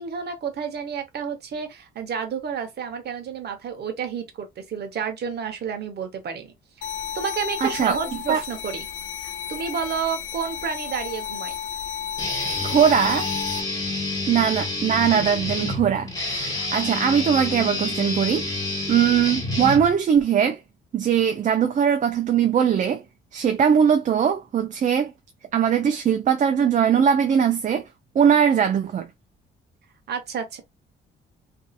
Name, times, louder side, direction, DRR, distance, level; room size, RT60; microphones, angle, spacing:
voice 1, 0.0-6.9 7.1-8.9 9.2-11.5 30.1-30.6, right 7 dB, 55° right, 0.9 m, -30 dB
sound 1, 6.8-13.6, left 9 dB, 75° left, 0.5 m, -32 dB
voice 2, 7.6-8.0 8.3-8.4 12.6-13.3 14.3-20.6 20.9-23.0 23.3-25.1 25.5-27.8 28.1-29.1, right 8 dB, 40° right, 0.4 m, -20 dB
Guitar, 12.2-20.2, left 2 dB, 20° left, 1.3 m, -28 dB
2.7 x 2.5 x 2.3 m
cardioid pair, 90°, 20 cm